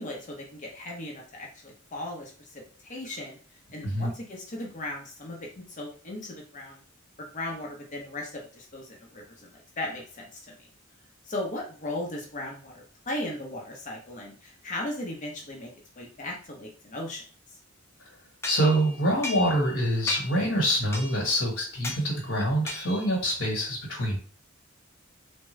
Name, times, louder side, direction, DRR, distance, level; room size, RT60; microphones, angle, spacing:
voice 1, 0.0-3.4 3.7-6.8 7.3-10.7 11.3-15.7 16.0-17.2, left 1 dB, 40° left, 0 dB, 0.7 m, -37 dB
voice 2, 18.4-24.2, equal, 65° left, -4 dB, 1.2 m, -25 dB
sound 1, 18.4-19.8 20.1-20.5 20.9-21.4 21.8-22.1 22.7-23.2, left 2 dB, 15° left, 0.4 m, -36 dB
3.5 x 2.1 x 3.1 m, 0.40 s
head